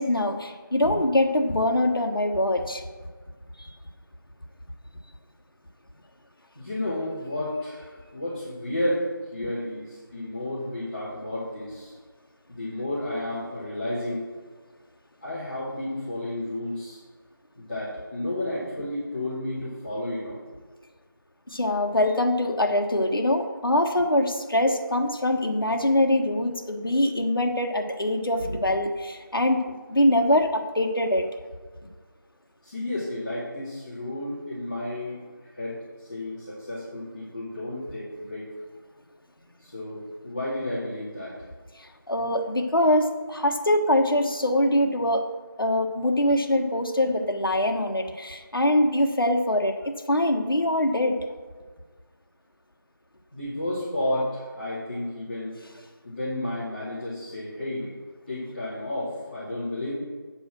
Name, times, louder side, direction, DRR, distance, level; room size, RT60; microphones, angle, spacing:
voice 1, 0.0-2.8 3.6-3.7 21.5-31.3 41.8-45.3 45.6-49.8 50.1-51.2, left 1 dB, 75° left, 3 dB, 1.4 m, -23 dB
voice 2, 6.5-9.1 9.3-11.9 12.5-14.3 15.2-17.0 17.5-20.4 32.6-35.2 35.5-38.5 39.6-41.4 53.3-55.5 56.0-57.9 58.3-59.9, left 1 dB, 25° left, -14 dB, 2.5 m, -32 dB
8.8 x 5.4 x 6.1 m, 1.5 s
figure-of-eight pair, 175°, 12 cm